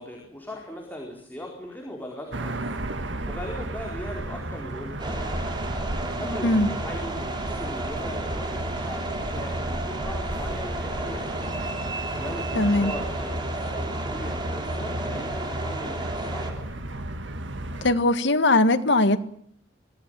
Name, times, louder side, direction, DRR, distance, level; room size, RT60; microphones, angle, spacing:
voice 1, 0.0-2.7 3.3-5.6 6.2-11.6 12.2-16.7, left 1 dB, 10° left, 4.4 m, -39 dB
sound 1, 2.3-17.9, right 1 dB, 75° right, 1.8 m, -34 dB
sound 2, 5.0-16.5, right 1 dB, 25° right, 4.0 m, -32 dB
voice 2, 12.6-12.9 17.8-19.2, left 2 dB, 70° left, 1.7 m, -20 dB
24.5 x 16.5 x 9.1 m
head